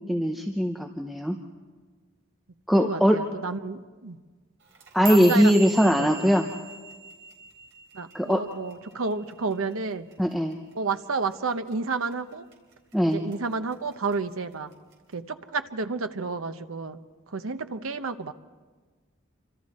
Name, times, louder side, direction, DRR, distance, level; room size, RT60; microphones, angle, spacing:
voice 1, 0.0-1.4 2.7-3.2 4.9-6.4 8.1-8.4 10.2-10.6 12.9-13.2, equal, ahead, 2 dB, 0.8 m, -21 dB
voice 2, 2.7-4.2 5.0-5.5 5.8-6.5 7.9-10.0 10.7-12.5 13.1-14.7 15.1-17.0 17.3-18.3, right 4 dB, 85° right, 9 dB, 0.9 m, -31 dB
sound 1, 4.6-9.0 9.3-9.7 10.1-10.5 10.9-11.1 11.7-12.1 12.5-13.3 13.7-14.1 14.9-15.0, right 1 dB, 65° right, 4.1 m, -39 dB
28.0 x 25.0 x 4.3 m, 1.4 s
head